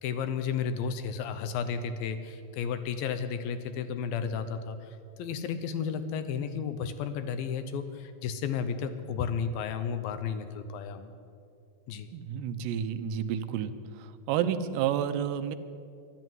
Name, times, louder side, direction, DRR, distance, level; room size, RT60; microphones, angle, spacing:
voice 1, 0.0-11.1 11.9-12.1, left 6 dB, 75° left, 10 dB, 2.3 m, -33 dB
voice 2, 12.1-13.7 14.0-15.6, right 9 dB, 90° right, 9 dB, 2.9 m, -30 dB
12.5 x 11.5 x 9.3 m, 2.4 s
omnidirectional pair, 4.7 m